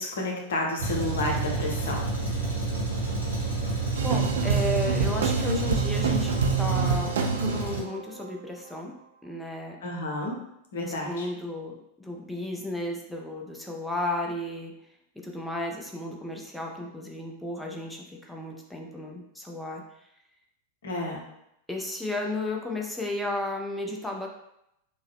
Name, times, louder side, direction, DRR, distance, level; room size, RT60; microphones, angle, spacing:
voice 1, 0.0-2.0 9.8-10.4 10.7-11.3 20.8-21.2, left 2 dB, 60° left, 0 dB, 0.8 m, -30 dB
Truck, 0.8-7.8, right 3 dB, 90° right, 1.0 m, -29 dB
voice 2, 3.9-8.9 9.2-9.8 10.8-14.8 15.2-20.1 21.7-24.3, left 1 dB, 5° left, 0 dB, 0.5 m, -34 dB
sound 1, 3.9-8.5, right 6 dB, 65° right, 0.3 m, -27 dB
3.5 x 2.1 x 3.4 m, 0.80 s
figure-of-eight pair, 90°, 0 cm